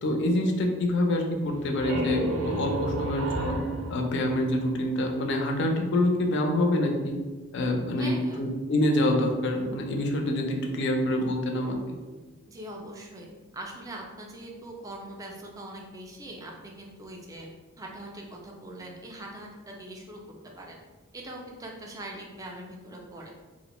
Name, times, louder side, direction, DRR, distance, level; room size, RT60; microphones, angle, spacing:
voice 1, 0.0-3.6 3.9-7.1 7.5-12.0, left 1 dB, 55° left, 3 dB, 0.4 m, -26 dB
sound 1, 1.4-5.1, equal, 80° right, 0.5 m, -32 dB
voice 2, 8.0-8.4 12.5-13.3 13.5-17.5 17.8-20.2 20.6-20.8 21.1-23.3, right 1 dB, 15° right, 0 dB, 0.3 m, -42 dB
2.4 x 2.0 x 2.9 m, 1.3 s
head